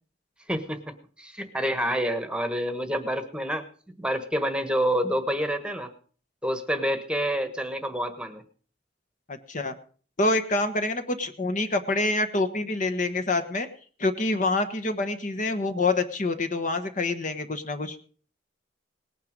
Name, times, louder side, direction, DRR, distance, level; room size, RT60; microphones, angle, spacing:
voice 1, 0.5-3.7 4.0-5.9 6.4-8.4, equal, 5° right, 8 dB, 1.3 m, -28 dB
voice 2, 9.3-9.7 10.2-13.7 14.0-18.0, left 2 dB, 45° left, 8 dB, 1.2 m, -26 dB
19.0 x 9.3 x 5.2 m, 0.43 s
head